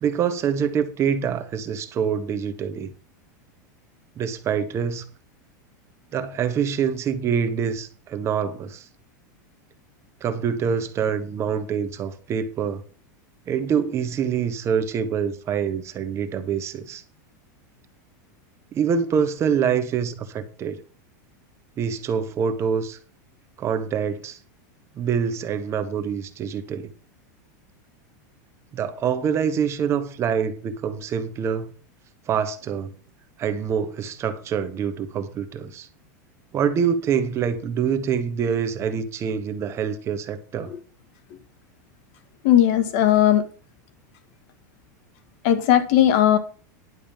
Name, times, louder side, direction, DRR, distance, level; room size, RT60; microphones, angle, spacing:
voice 1, 0.0-2.9 4.2-5.0 6.1-8.9 10.2-12.8 13.5-17.0 18.7-20.8 21.8-23.0 23.6-24.4 24.9-26.9 28.7-31.7 32.3-32.9 33.4-35.9 36.5-40.7, right 7 dB, 30° right, 1.1 m, -25 dB
voice 2, 42.4-43.4 45.4-46.4, left 11 dB, 55° left, 1.7 m, -17 dB
11.0 x 5.0 x 7.2 m
supercardioid pair, 145°, 10 cm